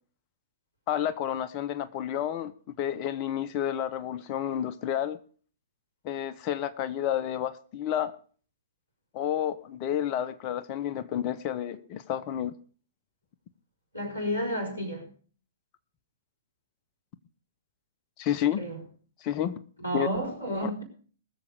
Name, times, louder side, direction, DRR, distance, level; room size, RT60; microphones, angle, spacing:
voice 1, 0.9-2.5 2.8-5.2 6.0-8.1 9.1-12.5 18.2-18.6 19.2-19.6 19.9-20.1, left 10 dB, 30° left, 0.8 m, -30 dB
voice 2, 13.9-15.1 18.6-18.8 19.8-20.8, equal, 90° right, 4.5 m, -31 dB
20.0 x 7.1 x 5.0 m
figure-of-eight pair, 110°, 0 cm